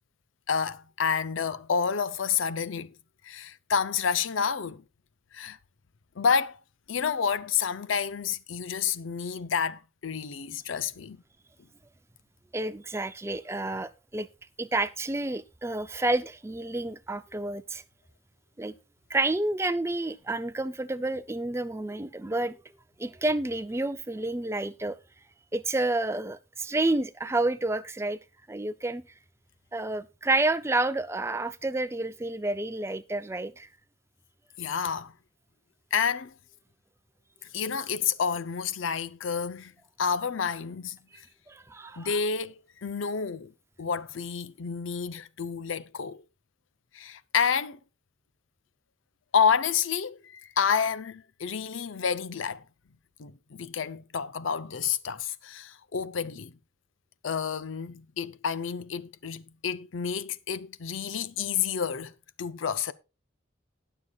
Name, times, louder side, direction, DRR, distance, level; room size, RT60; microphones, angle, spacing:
voice 1, 0.5-2.9 3.2-4.8 5.3-5.6 6.2-6.6 6.9-11.2 34.6-35.1 35.9-36.3 37.5-39.7 40.0-41.0 42.0-43.5 43.8-46.2 46.9-47.8 49.3-52.6 53.2-56.5 57.2-62.9, left 6 dB, 85° left, 0.6 m, -29 dB
voice 2, 12.5-14.3 14.6-17.8 18.6-18.7 19.1-22.6 23.0-25.0 25.5-28.2 28.5-29.0 29.7-33.7 41.5-42.2, right 2 dB, 15° right, 0.4 m, -29 dB
19.5 x 6.8 x 2.3 m
head